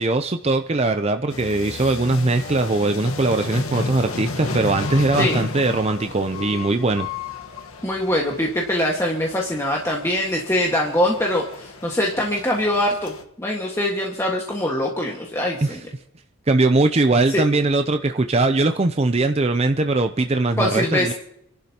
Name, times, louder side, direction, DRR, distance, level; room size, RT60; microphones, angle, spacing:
voice 1, 0.0-7.1 15.6-15.8 16.5-21.1, right 2 dB, 30° right, 7 dB, 0.5 m, -20 dB
sound 1, 1.3-13.2, left 3 dB, 75° left, 1.4 m, -33 dB
voice 2, 7.8-13.1 13.4-15.8 17.3-17.4 20.6-21.1, left 1 dB, 10° left, -2 dB, 1.6 m, -23 dB
29.5 x 12.0 x 2.9 m, 0.75 s
head